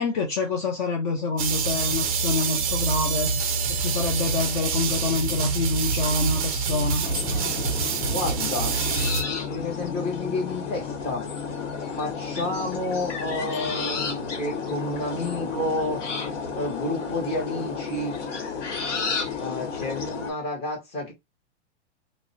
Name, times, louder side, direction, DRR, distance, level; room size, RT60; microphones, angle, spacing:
voice 1, 0.0-3.4 3.7-7.0, left 3 dB, 40° left, 0.6 m, -27 dB
sound 1, 1.4-9.2, right 5 dB, 30° right, 0.4 m, -26 dB
voice 2, 6.7-7.7 8.0-8.8 9.5-11.3 12.0-16.0 16.5-18.2 19.4-21.1, left 1 dB, 15° left, 0.8 m, -30 dB
sound 2, 7.0-20.3, left 5 dB, 80° left, 1.0 m, -31 dB
2.4 x 2.1 x 3.7 m
supercardioid pair, 170°, 36 cm